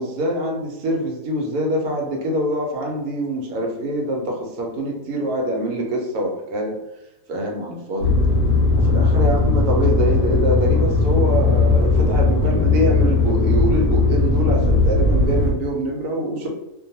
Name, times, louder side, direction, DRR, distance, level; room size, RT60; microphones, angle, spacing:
voice 1, 0.0-6.8 7.3-8.2 8.7-16.5, right 1 dB, 75° right, 1 dB, 1.1 m, -24 dB
sound 1, 8.0-15.5, left 3 dB, 60° left, 0.9 m, -18 dB
2.6 x 2.2 x 2.7 m, 0.94 s
omnidirectional pair, 1.7 m